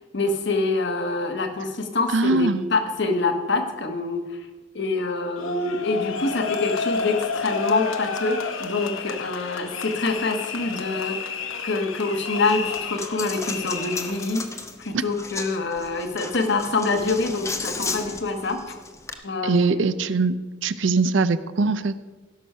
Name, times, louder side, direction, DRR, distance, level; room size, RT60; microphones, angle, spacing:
voice 1, 0.1-4.2 4.7-11.4 11.6-14.4 14.8-18.7 19.2-19.8, left 3 dB, 60° left, 6 dB, 1.3 m, -26 dB
voice 2, 2.1-2.6 14.9-15.0 19.4-20.3 20.6-21.9, right 3 dB, 65° right, 14 dB, 0.5 m, -21 dB
sound 1, 5.4-14.3, left 5 dB, 85° left, 1.0 m, -30 dB
Coin (dropping), 12.4-19.1, left 4 dB, 15° left, 0.7 m, -35 dB
16.0 x 6.3 x 5.5 m, 1.2 s
head